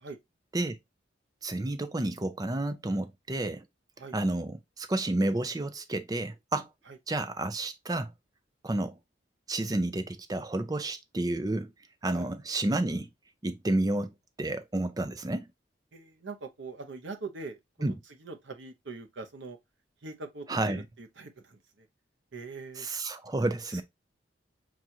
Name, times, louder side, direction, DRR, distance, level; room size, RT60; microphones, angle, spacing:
voice 1, 1.4-3.6 4.1-6.7 7.1-8.1 8.6-9.0 9.5-11.7 12.0-13.1 13.4-15.5 17.8-17.9 20.5-20.8 22.8-23.8, right 2 dB, 20° right, 0.4 m, -30 dB
voice 2, 15.9-17.9 18.2-19.6 20.0-21.9 22.3-22.9 23.7-23.8, right 3 dB, 75° right, 0.8 m, -42 dB
6.1 x 2.5 x 2.7 m
head